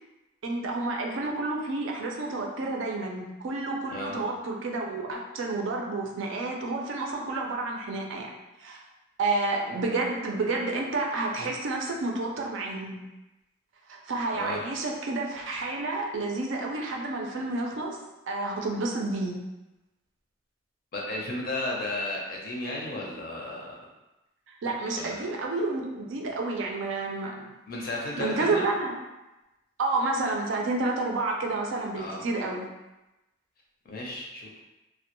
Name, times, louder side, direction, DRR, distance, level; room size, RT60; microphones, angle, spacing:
voice 1, 0.4-8.3 8.6-8.8 9.2-13.0 13.9-18.0 18.3-19.4 24.6-27.5 28.2-29.0 29.8-32.7, right 2 dB, 70° right, 0 dB, 0.4 m, -30 dB
voice 2, 3.9-4.2 14.3-14.6 20.9-23.9 24.9-25.2 27.7-28.6 32.0-32.2 33.8-34.5, left 2 dB, 50° left, -2 dB, 0.5 m, -34 dB
2.2 x 2.0 x 2.9 m, 1.0 s
head